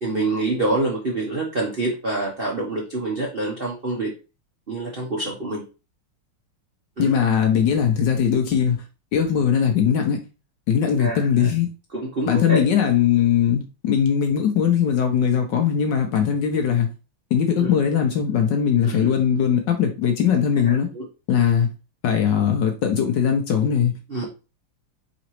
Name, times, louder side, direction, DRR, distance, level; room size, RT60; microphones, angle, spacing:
voice 1, 0.0-4.1 4.7-5.6 7.0-7.1 11.0-11.5 11.9-12.6 17.6-17.7 18.8-19.1 20.7-21.0 24.1-24.2, right 2 dB, 55° right, 0.6 m, -26 dB
voice 2, 7.0-8.8 9.1-10.2 10.7-11.7 12.3-16.9 17.3-20.9 21.3-21.7 22.0-23.9, left 8 dB, 70° left, 1.1 m, -20 dB
4.1 x 3.8 x 3.0 m
omnidirectional pair, 2.4 m